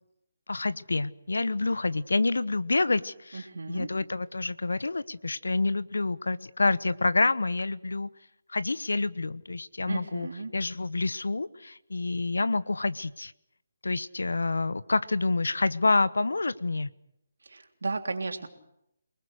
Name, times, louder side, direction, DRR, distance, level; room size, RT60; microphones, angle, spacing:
voice 1, 0.5-8.1 8.5-13.3 13.8-16.9, left 3 dB, 90° left, 1.0 m, -28 dB
voice 2, 3.3-3.9 9.9-10.5 17.4-18.5, right 3 dB, 80° right, 3.3 m, -34 dB
28.0 x 20.0 x 6.5 m
hypercardioid pair, 160°, 0 cm